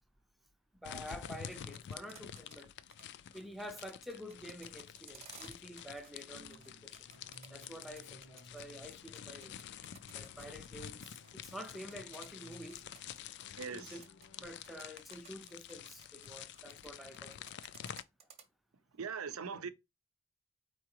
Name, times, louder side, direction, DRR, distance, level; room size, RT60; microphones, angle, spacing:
voice 1, 0.7-2.7 3.3-7.1 7.5-9.5 10.1-12.9 13.7-14.0 14.4-17.4, equal, ahead, 0.5 m, -48 dB
sound 1, 0.8-18.0, left 9 dB, 55° left, 0.3 m, -49 dB
sound 2, 1.1-2.6 2.9-3.1 3.3-6.2 6.5-8.6 8.9-13.7 13.9-14.3 14.6-16.9 17.1-18.4, right 6 dB, 30° right, 0.8 m, -57 dB
sound 3, 6.3-14.4, left 1 dB, 75° left, 0.8 m, -60 dB
voice 2, 13.6-14.0 18.9-19.7, right 6 dB, 75° right, 0.6 m, -41 dB
4.6 x 3.7 x 2.9 m
head